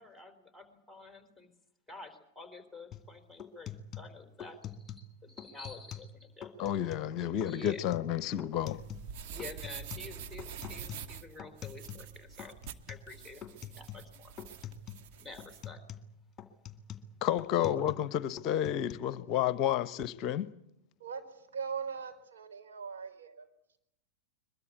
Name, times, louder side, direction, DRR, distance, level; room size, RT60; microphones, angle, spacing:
voice 1, 0.0-1.5 1.9-6.7 7.2-7.8 9.3-12.6 12.9-14.3 15.2-15.8 17.5-17.7, left 3 dB, 5° right, 3.8 m, -49 dB
sound 1, 2.9-3.1 3.4-5.1 5.4-6.1 6.4-7.1 7.4-9.1 9.4-12.1 12.4-13.1 13.4-14.1 14.4-15.1 15.4-18.1 18.4-18.9, left 8 dB, 25° left, 2.2 m, -45 dB
voice 2, 6.6-8.8 17.2-20.5, left 11 dB, 40° left, 0.9 m, -31 dB
sound 2, 8.5-15.6, right 8 dB, 45° right, 1.5 m, -46 dB
voice 3, 21.0-23.5, right 6 dB, 65° right, 4.2 m, -40 dB
22.5 x 22.5 x 8.5 m
figure-of-eight pair, 95°, 0 cm